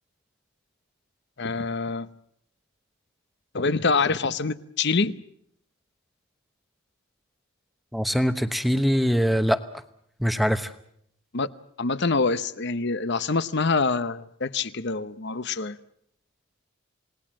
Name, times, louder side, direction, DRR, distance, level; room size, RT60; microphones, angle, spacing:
voice 1, 1.4-2.1 3.5-5.1 11.3-11.5 11.8-15.8, left 4 dB, 50° left, 0.9 m, -25 dB
voice 2, 7.9-9.6 10.2-10.7, equal, ahead, 1.0 m, -22 dB
28.5 x 19.0 x 7.6 m
head